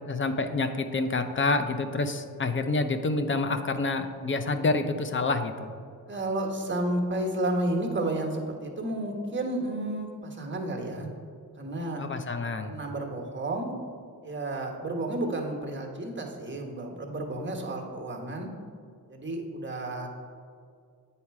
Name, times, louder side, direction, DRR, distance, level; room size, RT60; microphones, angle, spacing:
voice 1, 0.1-5.7 12.0-12.7, left 3 dB, 30° left, 8 dB, 0.6 m, -28 dB
voice 2, 6.1-11.1 11.6-12.0 12.6-13.7 14.2-18.5 19.1-20.1, right 1 dB, 30° right, 1 dB, 1.2 m, -31 dB
8.7 x 4.2 x 4.7 m, 2.3 s
cardioid pair, 75°, 38 cm